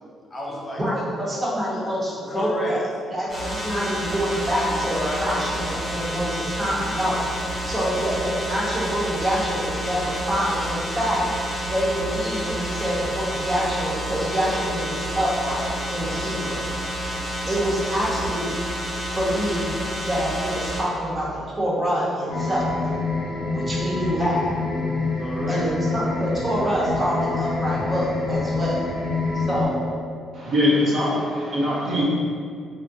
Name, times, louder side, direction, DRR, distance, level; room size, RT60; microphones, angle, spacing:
voice 1, 0.0-0.8 2.3-2.7 4.6-5.5 25.2-25.7, left 1 dB, 30° left, -5 dB, 0.5 m, -32 dB
voice 2, 0.8-2.8 3.1-7.2 7.6-11.2 11.7-16.6 17.5-18.5 19.1-19.7 20.1-22.7 23.5-24.5 25.5-28.9 29.3-29.8, equal, 30° right, -6 dB, 0.8 m, -26 dB
sound 1, 3.3-20.8, right 1 dB, 5° left, 0.9 m, -29 dB
sound 2, 22.3-29.7, left 3 dB, 90° left, 0.4 m, -27 dB
voice 3, 30.3-32.1, left 1 dB, 60° right, -6 dB, 0.6 m, -22 dB
2.5 x 2.1 x 2.6 m, 2.2 s
cardioid pair, 90°, 0 cm